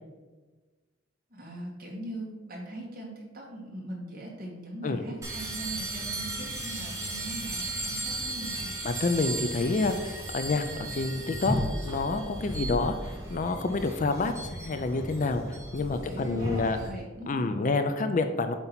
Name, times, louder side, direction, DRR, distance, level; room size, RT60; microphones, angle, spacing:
voice 1, 1.3-8.7 15.8-17.6, right 1 dB, 45° right, -2 dB, 1.7 m, -40 dB
sound 1, 5.2-16.9, right 1 dB, 15° right, 1.3 m, -35 dB
voice 2, 8.8-10.6 10.9-12.9 13.3-15.4 15.7-16.8 17.3-18.5, left 3 dB, 40° left, 8 dB, 0.4 m, -28 dB
7.7 x 2.9 x 5.7 m, 1.3 s
head